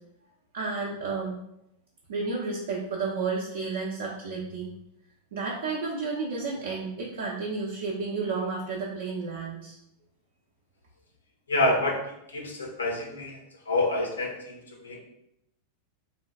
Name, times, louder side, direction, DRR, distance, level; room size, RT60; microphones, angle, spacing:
voice 1, 0.5-1.4 2.1-4.7 5.3-9.8, right 4 dB, 60° right, -4 dB, 0.4 m, -31 dB
voice 2, 11.5-13.4 13.7-15.0, left 2 dB, 75° left, 1 dB, 0.4 m, -28 dB
3.2 x 2.2 x 2.4 m, 0.80 s
figure-of-eight pair, 90°, 0 cm